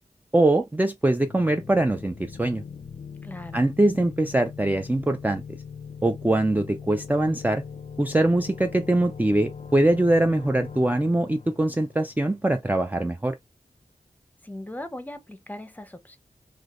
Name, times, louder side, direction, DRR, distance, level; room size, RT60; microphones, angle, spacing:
voice 1, 0.3-2.6 3.5-5.4 6.0-7.6 8.0-13.4, right 1 dB, 10° right, 0.4 m, -22 dB
sound 1, 1.1-12.7, left 6 dB, 50° left, 0.5 m, -41 dB
voice 2, 3.2-3.7 14.4-16.2, left 1 dB, 10° left, 0.8 m, -39 dB
3.2 x 3.0 x 2.4 m
wide cardioid pair, 50°, 14 cm